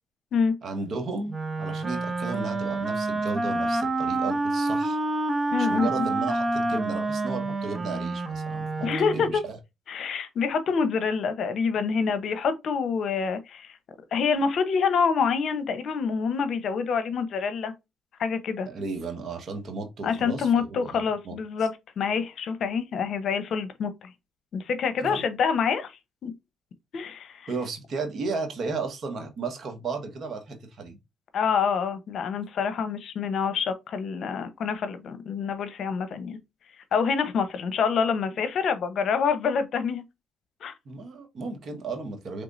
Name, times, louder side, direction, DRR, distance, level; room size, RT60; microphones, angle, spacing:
voice 1, 0.6-5.0 5.6-8.9 9.1-9.6 18.7-21.7 25.0-25.2 27.5-31.0 40.8-42.4, right 4 dB, 60° right, 1.3 m, -34 dB
Wind instrument woodwind instrument, 1.3-9.4, right 2 dB, 25° right, 0.8 m, -28 dB
voice 2, 5.5-6.1 8.8-9.4 9.9-13.7 14.1-17.7 18.2-18.7 20.0-24.1 24.5-25.9 26.2-26.3 26.9-27.5 31.3-36.4 36.9-40.0 40.6-40.7, left 6 dB, 65° left, 0.8 m, -26 dB
4.6 x 3.4 x 2.6 m
cardioid pair, 90°, 0 cm